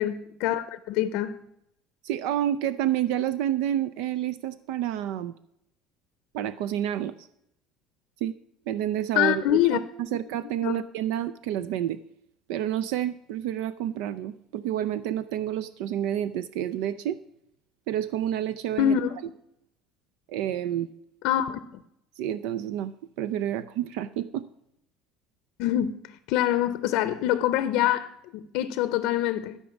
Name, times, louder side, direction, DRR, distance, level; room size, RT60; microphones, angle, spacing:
voice 1, 0.0-1.4 9.1-9.8 10.6-10.8 18.8-19.2 21.2-21.8 25.6-25.9 26.3-29.6, left 12 dB, 65° left, 0.6 m, -25 dB
voice 2, 2.0-5.3 6.3-7.3 8.2-8.3 8.7-12.0 12.5-17.2 17.9-19.0 20.3-20.9 22.2-22.9 23.2-24.5, right 11 dB, 70° right, 0.5 m, -29 dB
13.5 x 5.3 x 7.1 m
cardioid pair, 175°, 0 cm